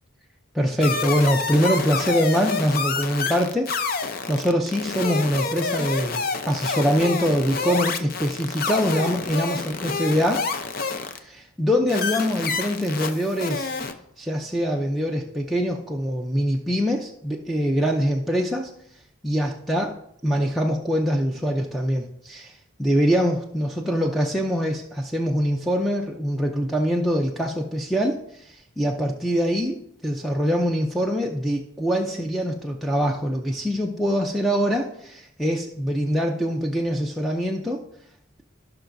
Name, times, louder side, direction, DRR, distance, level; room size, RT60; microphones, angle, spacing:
voice 1, 0.5-3.9 4.3-10.5 11.2-13.7 14.2-18.7 19.2-20.0 20.2-37.8, equal, ahead, -2 dB, 0.5 m, -24 dB
sound 1, 0.8-11.2 11.9-13.9, left 4 dB, 45° left, 0.6 m, -28 dB
16.0 x 5.8 x 2.6 m, 0.73 s
head